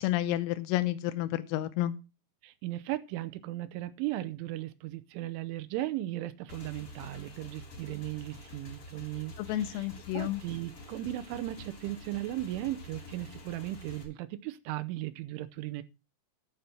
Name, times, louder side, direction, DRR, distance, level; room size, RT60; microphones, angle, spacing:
voice 1, 0.0-1.9 9.4-10.4, left 14 dB, 85° left, 3.4 m, -30 dB
voice 2, 2.4-9.9 10.1-15.8, right 15 dB, 80° right, 3.0 m, -37 dB
Motorcycle / Engine, 6.5-14.0, left 2 dB, 35° left, 2.5 m, -48 dB
11.5 x 6.7 x 5.8 m
omnidirectional pair, 5.9 m